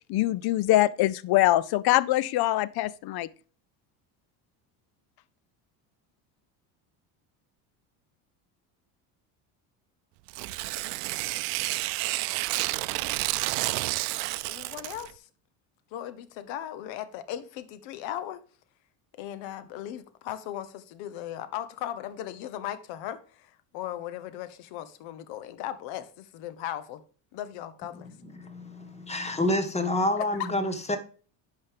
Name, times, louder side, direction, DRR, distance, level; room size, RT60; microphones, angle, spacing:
voice 1, 0.1-3.3, left 16 dB, 55° left, 0.6 m, -23 dB
Tearing, 10.3-15.1, right 21 dB, 80° right, 0.5 m, -30 dB
voice 2, 14.5-15.3 15.9-18.4 19.2-27.0 27.3-28.1 30.2-30.5, left 11 dB, 75° left, 1.1 m, -37 dB
voice 3, 28.0-31.0, left 1 dB, 15° left, 1.5 m, -28 dB
10.0 x 5.4 x 3.5 m
supercardioid pair, 85°, 46 cm